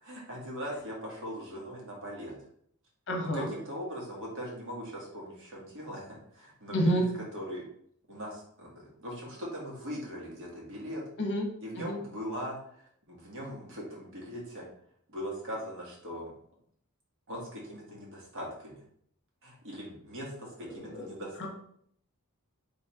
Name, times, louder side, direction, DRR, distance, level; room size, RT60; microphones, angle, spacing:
voice 1, 0.0-2.3 3.3-7.0 7.3-7.6 8.1-11.0 11.6-14.6 15.1-16.3 17.3-18.8 19.4-21.5, equal, 60° right, -4 dB, 1.5 m, -40 dB
voice 2, 3.1-3.5 6.7-7.0 11.2-11.5 11.8-12.0 20.6-21.1 21.4-21.5, equal, 55° left, 1 dB, 0.8 m, -29 dB
3.7 x 3.0 x 3.4 m, 0.66 s
head